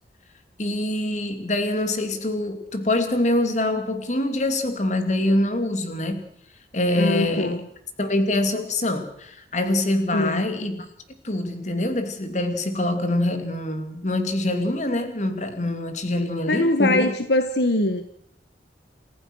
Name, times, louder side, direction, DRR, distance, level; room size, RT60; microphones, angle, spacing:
voice 1, 0.6-6.3 6.7-7.6 8.0-10.8 11.2-17.1, left 1 dB, 40° left, 8 dB, 2.9 m, -24 dB
voice 2, 7.0-7.6 10.1-10.4 16.5-18.0, left 1 dB, 70° left, 9 dB, 1.3 m, -22 dB
28.5 x 15.0 x 6.3 m, 0.71 s
head